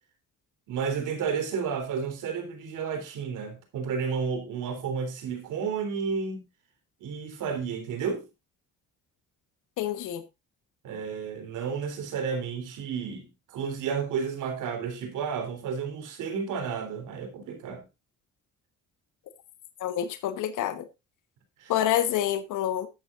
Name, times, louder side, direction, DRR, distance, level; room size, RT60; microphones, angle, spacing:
voice 1, 0.7-6.5 7.0-8.2 10.8-17.8 21.6-21.7, right 6 dB, 85° right, 3.5 m, -32 dB
voice 2, 9.8-10.2 19.8-20.8 21.7-22.9, left 11 dB, 85° left, 1.3 m, -27 dB
12.5 x 9.3 x 2.5 m
cardioid pair, 90°, 30 cm